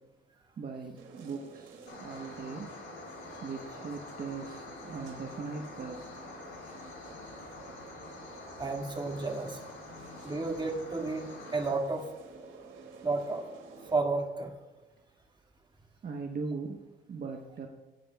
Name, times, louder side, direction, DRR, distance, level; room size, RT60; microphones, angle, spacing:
voice 1, 0.6-2.7 3.4-6.0 16.0-16.8 17.1-17.7, right 4 dB, 50° right, 2 dB, 1.1 m, -39 dB
sound 1, 1.0-14.0, right 4 dB, 75° right, 2.6 m, -51 dB
sound 2, 1.9-11.7, left 3 dB, 75° left, 3.8 m, -47 dB
voice 2, 8.6-9.6 10.2-12.1 13.0-13.4 13.9-14.5, right 3 dB, 25° right, 1 dB, 2.0 m, -32 dB
18.0 x 9.6 x 2.3 m, 1.2 s
cardioid pair, 90°, 20 cm